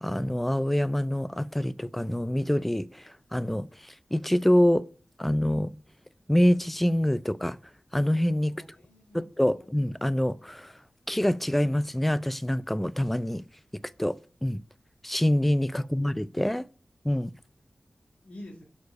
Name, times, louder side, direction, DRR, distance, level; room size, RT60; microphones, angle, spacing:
voice 1, 0.0-4.8 5.2-5.7 6.3-7.6 7.9-8.5 9.1-10.7 11.1-13.4 14.0-14.6 15.0-16.6 17.0-17.3, left 1 dB, 5° left, 0.4 m, -26 dB
voice 2, 8.5-9.7 15.7-16.1 18.2-18.6, left 1 dB, 80° left, 1.8 m, -48 dB
6.8 x 4.8 x 4.6 m
wide cardioid pair, 100°, 2 cm